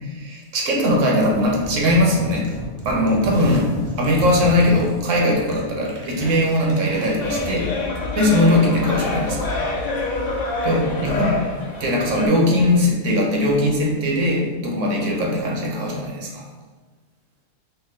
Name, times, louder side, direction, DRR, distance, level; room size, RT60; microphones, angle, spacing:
voice 1, 0.2-2.5 2.8-7.7 8.1-9.5 10.6-11.4 11.8-16.5, left 1 dB, 70° right, -1 dB, 1.0 m, -20 dB
sound 1, 1.2-7.6, equal, 40° right, 0.4 m, -34 dB
sound 2, 7.2-12.3, left 3 dB, 65° left, 1.0 m, -26 dB
3.2 x 2.8 x 3.6 m, 1.3 s
omnidirectional pair, 1.4 m